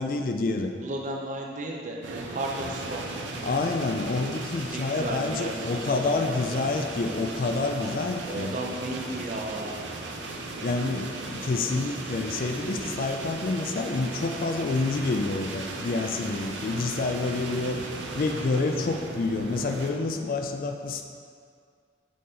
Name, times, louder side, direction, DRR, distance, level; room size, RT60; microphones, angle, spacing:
voice 1, 0.0-0.7 3.4-8.5 10.6-17.8 18.1-21.1, left 3 dB, 50° left, 5 dB, 0.4 m, -28 dB
voice 2, 0.8-3.0 4.6-6.6 7.7-9.8 17.6-17.9 18.7-18.8, right 1 dB, 45° right, 0 dB, 0.6 m, -35 dB
sound 1, 2.0-19.9, right 2 dB, 90° right, 0.6 m, -37 dB
6.6 x 4.0 x 3.8 m, 2.2 s
head